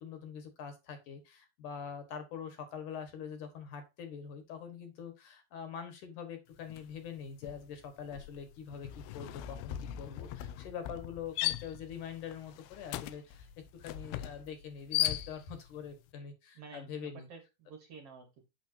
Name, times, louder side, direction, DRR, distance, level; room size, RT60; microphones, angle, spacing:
voice 1, 0.0-17.3, left 7 dB, 60° left, 7 dB, 2.7 m, -44 dB
sound 1, 6.7-7.0 7.3-15.7, left 14 dB, 85° left, 2.4 m, -38 dB
voice 2, 16.5-18.4, right 5 dB, 55° right, 5 dB, 1.9 m, -51 dB
8.8 x 7.4 x 2.7 m, 0.24 s
omnidirectional pair, 4.5 m